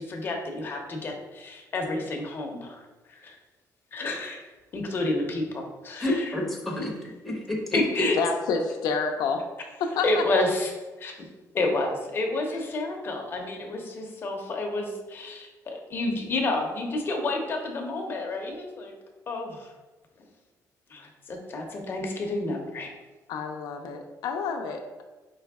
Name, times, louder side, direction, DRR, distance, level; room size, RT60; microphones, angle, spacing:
voice 1, 0.0-3.4 3.9-6.2 7.7-8.2 9.9-10.7 11.0-11.3 11.5-18.9 19.3-19.7 20.2-20.3 20.9-22.9, left 2 dB, 30° left, 1 dB, 0.7 m, -30 dB
voice 2, 6.0-8.1, left 1 dB, ahead, -3 dB, 0.8 m, -29 dB
voice 3, 8.2-9.5 9.8-10.2 23.3-25.0, left 5 dB, 85° left, 4 dB, 0.5 m, -29 dB
4.7 x 3.1 x 3.5 m, 1.2 s
cardioid pair, 170°, 7 cm